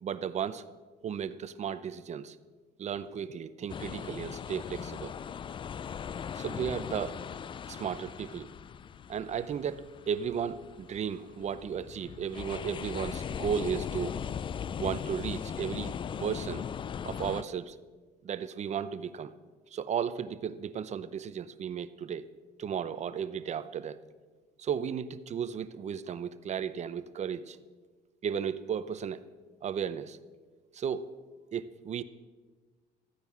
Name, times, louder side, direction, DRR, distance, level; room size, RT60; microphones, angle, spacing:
voice 1, 0.0-0.6 1.0-2.4 2.8-5.1 6.3-7.2 7.7-8.5 9.1-14.2 14.7-16.6 17.0-17.8 18.2-19.3 19.7-22.3 22.6-24.0 24.6-27.6 28.2-29.2 29.6-30.2 30.7-31.1 31.5-32.0, right 7 dB, 40° right, 14 dB, 0.7 m, -34 dB
sound 1, 3.7-17.4, left 7 dB, 30° left, 0.3 m, -39 dB
14.5 x 9.5 x 6.3 m, 1.4 s
cardioid pair, 110°, 17 cm